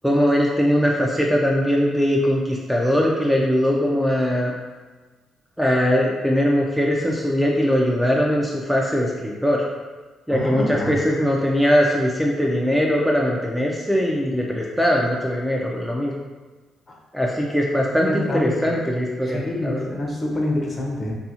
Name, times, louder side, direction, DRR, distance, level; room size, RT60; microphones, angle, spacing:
voice 1, 0.0-4.5 5.6-9.7 10.3-16.1 17.1-20.0, equal, ahead, -2 dB, 0.3 m, -21 dB
voice 2, 10.3-10.9 16.9-17.0 18.0-18.8 19.2-21.1, left 1 dB, 35° left, -1 dB, 0.6 m, -26 dB
2.6 x 2.4 x 2.7 m, 1.4 s
cardioid pair, 90°, 0 cm